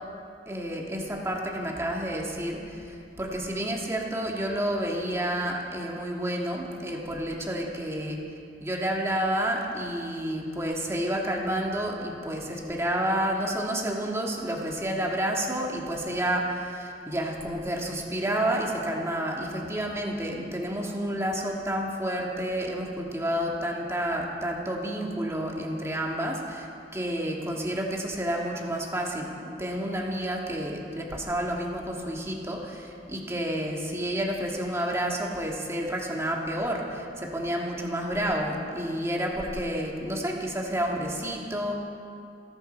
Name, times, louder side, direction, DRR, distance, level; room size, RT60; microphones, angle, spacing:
voice 1, 0.5-8.2 8.6-26.7 26.9-29.3 29.6-41.8, right 1 dB, 15° right, -1 dB, 2.1 m, -30 dB
29.0 x 11.0 x 4.6 m, 2.5 s
head